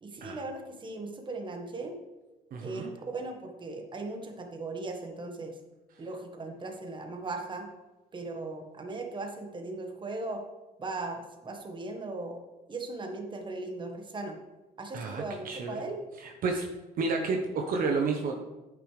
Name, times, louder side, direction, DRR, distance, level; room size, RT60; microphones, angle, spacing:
voice 1, 0.0-2.0 2.6-5.6 6.0-7.7 8.1-10.4 10.8-12.4 12.7-14.4 14.8-16.0, right 2 dB, 30° right, 4 dB, 1.5 m, -38 dB
voice 2, 2.5-2.9 14.9-15.8 16.2-16.7 17.0-18.4, right 4 dB, 55° right, 3 dB, 1.0 m, -31 dB
9.7 x 8.6 x 3.3 m, 1.1 s
cardioid pair, 110°, 17 cm